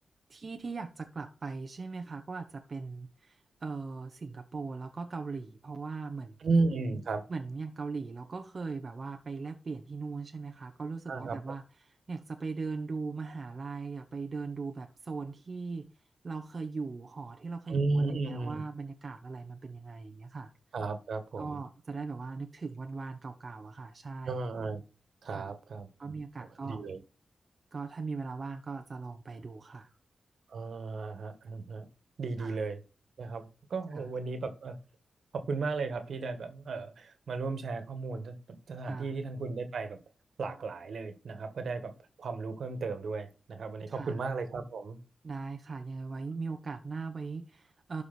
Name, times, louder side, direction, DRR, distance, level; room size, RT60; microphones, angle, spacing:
voice 1, 0.3-6.4 7.3-15.9 16.2-20.5 21.4-24.4 25.2-25.5 26.0-26.8 27.7-30.0 32.4-32.6 33.9-34.1 38.8-39.2 43.9-44.2 45.2-48.0, right 4 dB, 45° right, 0.9 m, -39 dB
voice 2, 6.4-7.3 11.1-11.4 17.7-18.6 20.7-21.6 24.3-24.8 25.2-27.0 30.5-31.9 32.2-32.8 33.2-34.8 35.3-40.0 40.4-45.0, right 3 dB, 70° right, 1.8 m, -34 dB
12.0 x 4.9 x 4.4 m
wide cardioid pair, 105°, 0 cm